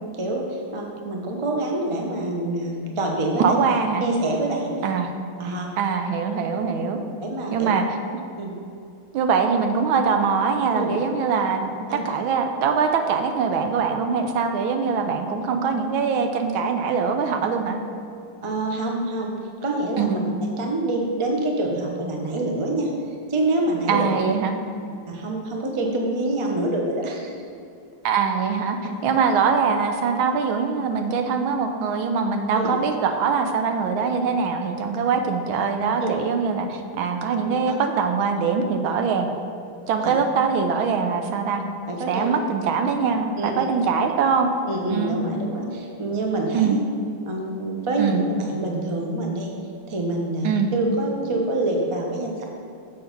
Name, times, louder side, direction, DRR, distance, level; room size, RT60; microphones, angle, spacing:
voice 1, 0.0-3.5 4.0-4.8 5.4-5.7 7.2-7.7 8.4-8.5 10.7-10.9 11.9-12.1 18.4-19.3 19.6-20.2 20.6-22.9 23.3-24.1 25.1-27.4 32.5-32.7 36.0-36.1 37.4-37.7 38.6-38.7 41.9-42.3 43.4-43.7 44.7-46.8 47.3-49.5 49.9-52.4, right 2 dB, 50° right, 0 dB, 0.3 m, -26 dB
voice 2, 3.4-4.0 4.8-5.1 5.8-7.0 7.5-7.8 9.1-17.8 20.0-20.2 23.9-24.5 28.0-28.8 29.0-39.3 39.9-41.6 42.1-44.5 44.9-45.2 46.5-46.8 48.0-48.2 50.4-50.7, right 5 dB, 80° right, 5 dB, 1.5 m, -23 dB
6.8 x 6.7 x 5.2 m, 2.5 s
omnidirectional pair, 2.3 m